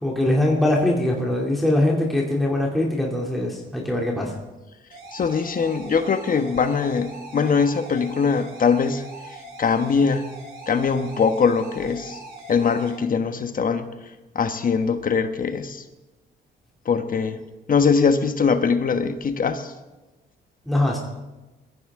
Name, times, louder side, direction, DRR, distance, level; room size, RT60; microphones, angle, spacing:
voice 1, 0.0-4.4 20.6-21.0, left 1 dB, ahead, -3 dB, 2.9 m, -22 dB
sound 1, 4.9-12.9, right 2 dB, 85° right, 6.0 m, -41 dB
voice 2, 5.1-9.0 9.3-10.3 10.7-12.2 12.5-13.9 14.3-15.8 16.8-17.4 17.7-19.7, left 5 dB, 45° left, 9 dB, 1.2 m, -22 dB
21.5 x 14.5 x 3.7 m, 1.1 s
cardioid pair, 90°, 20 cm